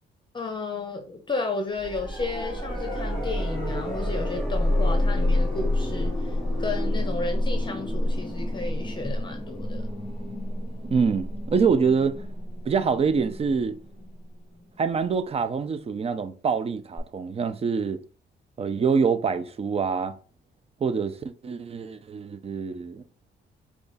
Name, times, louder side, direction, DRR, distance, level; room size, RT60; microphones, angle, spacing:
voice 1, 0.3-9.9, left 3 dB, 25° left, 0.8 m, -33 dB
sound 1, 1.7-14.6 17.0-17.1, left 1 dB, 5° left, 2.4 m, -28 dB
voice 2, 10.9-12.3 12.6-13.8 14.8-18.0 18.6-20.1 20.8-23.0, right 5 dB, 30° right, 0.5 m, -25 dB
4.7 x 2.4 x 4.0 m
cardioid pair, 90°, 20 cm